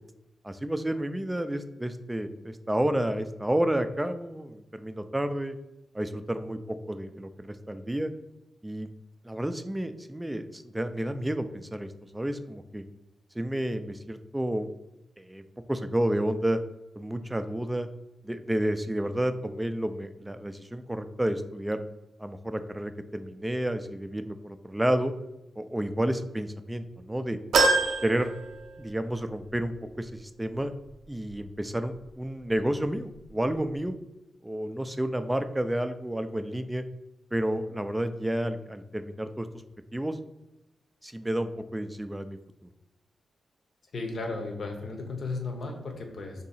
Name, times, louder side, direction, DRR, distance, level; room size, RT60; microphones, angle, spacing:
voice 1, 0.4-5.6 5.9-8.1 8.6-8.9 9.2-12.8 13.4-14.7 15.2-15.4 15.7-16.6 17.0-17.9 18.2-21.8 22.2-25.1 25.6-27.4 28.0-28.4 28.8-30.7 31.1-34.0 34.4-36.8 37.3-39.5 39.9-40.2 41.0-42.4, right 1 dB, 10° right, 9 dB, 0.3 m, -30 dB
sound 1, 27.5-29.2 29.6-29.7 30.9-31.0, right 3 dB, 80° right, 0.5 m, -25 dB
voice 2, 43.9-46.4, left 3 dB, 60° left, 3 dB, 0.8 m, -35 dB
2.7 x 2.7 x 4.1 m, 0.93 s
cardioid pair, 80°, 0 cm